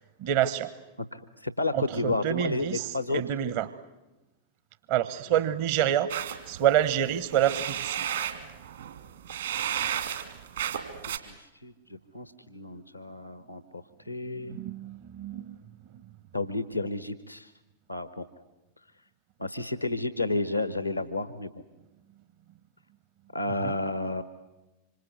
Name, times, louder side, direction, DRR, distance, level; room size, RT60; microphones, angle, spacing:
voice 1, 0.2-0.7 1.7-3.7 4.9-6.1 6.5-8.1 14.5-15.6 23.6-23.7, right 11 dB, 50° right, 15 dB, 1.1 m, -27 dB
voice 2, 1.0-3.2 11.1-14.6 16.3-17.5 17.9-18.3 19.4-21.5 23.3-24.2, left 2 dB, 85° left, 13 dB, 1.1 m, -32 dB
sound 1, 6.1-11.2, right 9 dB, 65° right, 2.5 m, -33 dB
26.0 x 26.0 x 8.3 m, 1.0 s
figure-of-eight pair, 90°, 0 cm